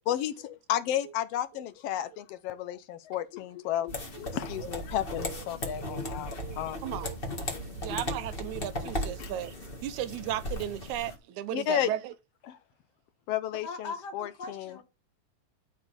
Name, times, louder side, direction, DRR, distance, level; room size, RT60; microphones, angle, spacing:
voice 1, 0.1-6.8 7.5-7.6 9.2-9.3 11.5-11.9 12.5-12.6 13.3-14.7, left 11 dB, 75° left, 1.5 m, -32 dB
sound 1, 3.9-11.1, left 1 dB, 25° left, 1.5 m, -37 dB
voice 2, 6.4-7.5 7.8-9.5 9.8-12.1, right 12 dB, 85° right, 2.2 m, -36 dB
voice 3, 13.5-14.8, left 4 dB, 40° left, 2.0 m, -40 dB
11.5 x 4.5 x 5.4 m
omnidirectional pair, 3.3 m